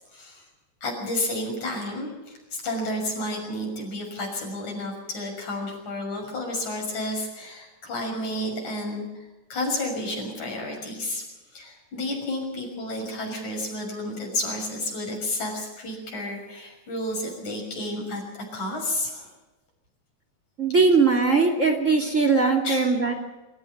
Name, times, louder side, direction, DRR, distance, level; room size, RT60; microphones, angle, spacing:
voice 1, 0.1-0.4 0.8-9.0 9.5-11.2 11.5-19.3 22.6-22.8, left 1 dB, 80° left, 1 dB, 7.7 m, -31 dB
voice 2, 20.6-23.1, right 4 dB, 25° right, 4 dB, 2.6 m, -20 dB
26.0 x 14.0 x 7.2 m, 1.1 s
omnidirectional pair, 3.3 m